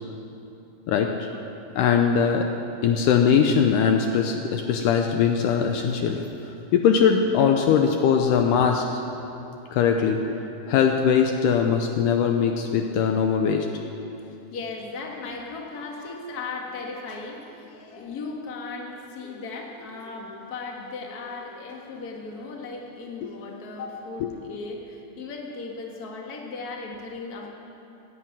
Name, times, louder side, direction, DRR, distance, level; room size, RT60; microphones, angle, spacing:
voice 1, 0.9-1.3 1.8-2.5 2.8-6.2 6.7-9.0 9.7-10.2 10.7-13.7 23.2-23.3 24.2-24.3, left 7 dB, 80° left, 3 dB, 2.1 m, -21 dB
voice 2, 14.1-27.5, left 3 dB, 40° left, 0 dB, 1.4 m, -37 dB
16.0 x 9.4 x 8.7 m, 2.8 s
omnidirectional pair, 4.2 m